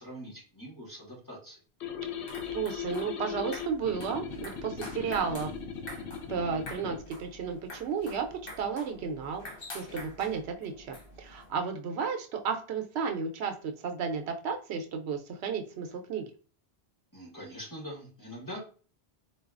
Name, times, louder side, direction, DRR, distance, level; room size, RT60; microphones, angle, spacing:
voice 1, 0.0-1.6 17.1-18.6, equal, 20° left, -4 dB, 1.3 m, -43 dB
sound 1, 1.8-7.0, left 7 dB, 90° left, 0.9 m, -38 dB
sound 2, 2.0-11.5, left 1 dB, 65° left, 1.2 m, -47 dB
voice 2, 2.5-5.5 6.3-9.4 9.7-16.3, right 6 dB, 85° right, 5 dB, 0.9 m, -33 dB
3.9 x 2.3 x 2.4 m, 0.39 s
omnidirectional pair, 1.1 m